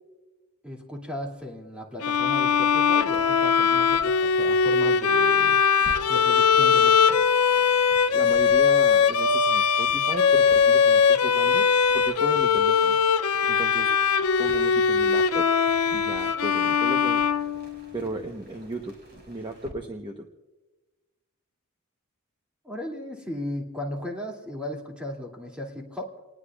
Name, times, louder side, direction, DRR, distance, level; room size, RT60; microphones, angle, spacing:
voice 1, 0.6-5.6 6.1-7.2 22.6-26.1, left 1 dB, 5° right, -1 dB, 2.6 m, -36 dB
Bowed string instrument, 2.0-18.1, left 6 dB, 75° left, 0.6 m, -21 dB
sound 1, 2.1-19.7, right 1 dB, 45° right, 5.8 m, -50 dB
voice 2, 7.9-11.7 11.9-13.0 13.5-13.9 14.4-15.5 15.9-17.2 17.9-19.0 19.3-20.3, right 1 dB, 25° right, 3 dB, 1.0 m, -35 dB
29.0 x 19.5 x 2.4 m, 1.2 s
head